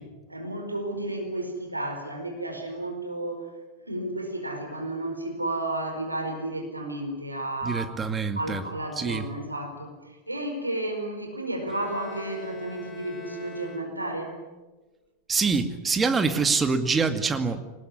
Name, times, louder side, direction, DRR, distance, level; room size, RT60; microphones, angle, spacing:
voice 1, 0.3-3.5 3.8-7.9 8.4-14.4, right 1 dB, 85° right, 4 dB, 4.9 m, -32 dB
voice 2, 7.6-8.6 9.0-9.3 15.3-17.6, right 4 dB, 15° right, 8 dB, 2.2 m, -25 dB
Bowed string instrument, 11.7-14.4, right 1 dB, 5° left, 5.4 m, -44 dB
25.0 x 19.5 x 10.0 m, 1.2 s
figure-of-eight pair, 90°, 0 cm